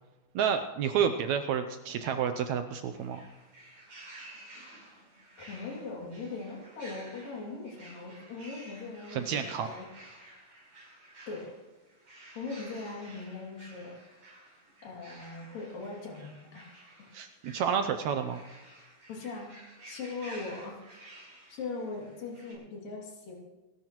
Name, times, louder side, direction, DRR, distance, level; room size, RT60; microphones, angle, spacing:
voice 1, 0.4-3.2 9.1-9.7 17.1-18.4, right 7 dB, 80° right, 8 dB, 1.7 m, -30 dB
sound 1, 2.9-22.5, right 1 dB, 40° right, 6.8 m, -52 dB
voice 2, 5.5-9.9 11.3-11.5 12.4-14.0 14.8-16.7 19.1-19.5 19.8-20.8 21.1-21.2 21.5-23.4, left 3 dB, 80° left, -2 dB, 4.4 m, -40 dB
27.5 x 13.0 x 3.0 m, 1.2 s
omnidirectional pair, 3.9 m